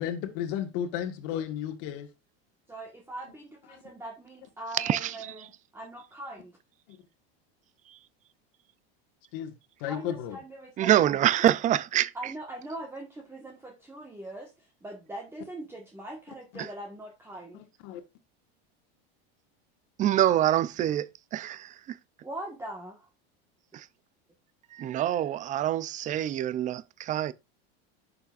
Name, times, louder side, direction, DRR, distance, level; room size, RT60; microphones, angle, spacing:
voice 1, 0.0-2.1 3.7-3.8 9.3-9.5 9.8-10.4 16.5-16.7 17.8-18.0, left 10 dB, 60° left, 1.6 m, -33 dB
voice 2, 2.7-6.6 9.8-11.4 12.1-17.7 22.2-23.1, right 1 dB, 10° right, 1.4 m, -42 dB
voice 3, 4.7-5.2 10.8-12.1 20.0-22.0 23.7-23.9 24.7-27.3, right 12 dB, 25° right, 0.5 m, -26 dB
11.0 x 7.0 x 2.4 m
supercardioid pair, 145°, 31 cm